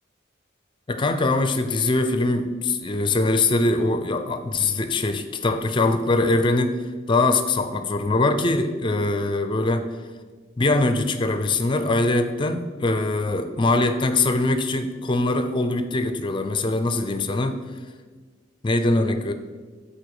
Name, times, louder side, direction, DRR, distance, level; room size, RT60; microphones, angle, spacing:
voice 1, 0.9-6.8 7.1-9.9 10.6-17.6 18.6-19.3, left 2 dB, 25° left, 9 dB, 0.4 m, -22 dB
13.0 x 4.3 x 4.8 m, 1.5 s
head